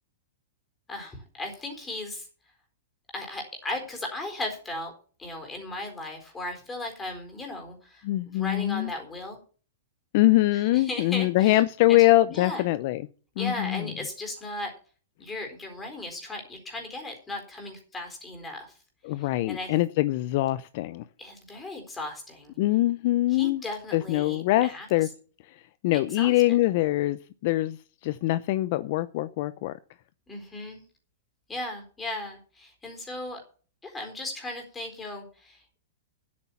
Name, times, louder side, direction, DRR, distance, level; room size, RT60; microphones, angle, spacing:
voice 1, 0.9-2.3 3.1-4.9 5.2-9.4 10.5-11.6 11.9-12.6 13.4-14.7 15.2-18.7 19.1-19.7 21.2-22.5 23.3-24.9 25.9-26.3 30.3-30.8 31.5-33.4 33.8-35.6, left 2 dB, 10° left, 4.1 m, -36 dB
voice 2, 8.0-8.9 10.1-13.0 13.4-13.9 19.0-21.0 22.6-23.6 23.9-25.1 25.4-29.8, left 17 dB, 50° left, 0.6 m, -24 dB
9.9 x 8.7 x 7.1 m
hypercardioid pair, 145°, 0 cm